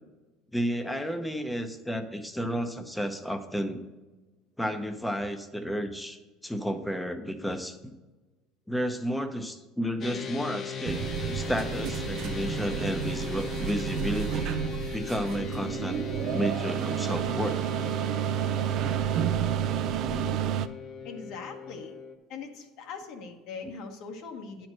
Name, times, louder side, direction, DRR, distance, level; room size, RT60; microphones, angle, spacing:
voice 1, 0.5-3.8 4.6-7.9 8.7-14.5 14.9-16.1 16.3-17.6 23.6-23.7, equal, 5° left, 7 dB, 0.8 m, -32 dB
sound 1, 10.0-22.2, left 7 dB, 35° left, 0.8 m, -38 dB
sound 2, 10.9-20.7, right 10 dB, 55° right, 0.4 m, -30 dB
voice 2, 20.0-20.5 21.0-21.9 22.3-24.7, left 5 dB, 65° left, 3 dB, 1.3 m, -41 dB
9.8 x 4.5 x 6.3 m, 1.2 s
supercardioid pair, 115°, 0 cm